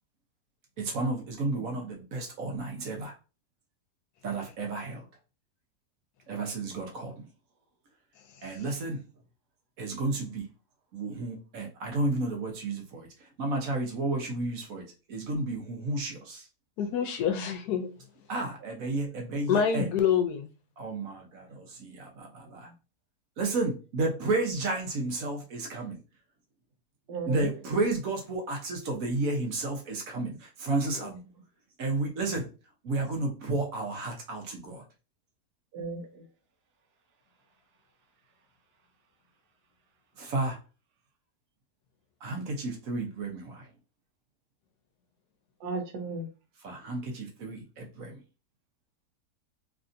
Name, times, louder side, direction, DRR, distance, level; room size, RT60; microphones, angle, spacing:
voice 1, 0.8-3.1 4.2-5.0 6.3-7.2 8.4-9.0 9.8-10.4 10.9-13.1 13.4-16.4 18.3-19.8 20.8-22.7 23.4-26.0 27.3-31.2 31.8-32.4 32.8-34.8 40.2-40.6 42.2-43.6 46.6-48.1, right 2 dB, 60° right, 1.2 m, -32 dB
voice 2, 16.8-17.9 19.5-20.5 30.9-31.1, left 7 dB, 75° left, 1.1 m, -27 dB
voice 3, 27.1-27.5 35.7-36.2 45.6-46.3, right 4 dB, 80° right, 1.4 m, -36 dB
3.3 x 2.6 x 2.5 m
omnidirectional pair, 1.7 m